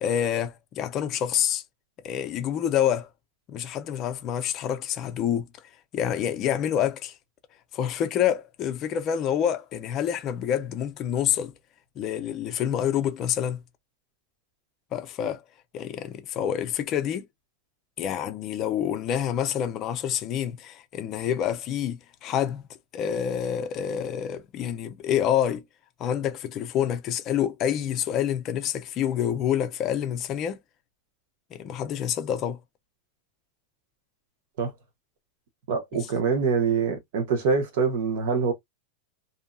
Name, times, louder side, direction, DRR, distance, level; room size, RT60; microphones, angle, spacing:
voice 1, 0.0-1.6 2.0-3.1 3.5-5.5 5.9-7.1 7.7-11.5 12.0-13.6 14.9-15.4 15.7-17.2 18.0-22.6 22.9-25.6 26.0-30.6 31.5-32.6 35.9-36.0, left 9 dB, 25° left, 0.5 m, -27 dB
voice 2, 35.7-38.5, right 5 dB, 55° right, 1.0 m, -24 dB
2.7 x 2.6 x 2.2 m
supercardioid pair, 170°, 0 cm